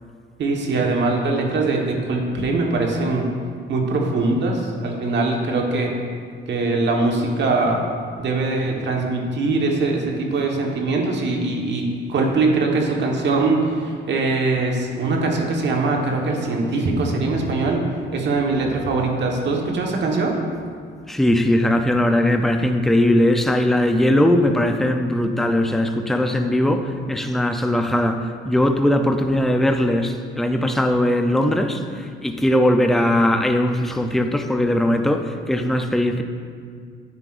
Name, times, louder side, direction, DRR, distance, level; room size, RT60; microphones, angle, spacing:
voice 1, 0.4-3.3 3.7-5.9 6.5-7.8 8.2-20.3, right 3 dB, 65° right, 0 dB, 1.4 m, -22 dB
voice 2, 21.1-36.2, left 1 dB, ahead, 5 dB, 0.5 m, -19 dB
10.0 x 8.9 x 2.6 m, 2.1 s
cardioid pair, 90°, 20 cm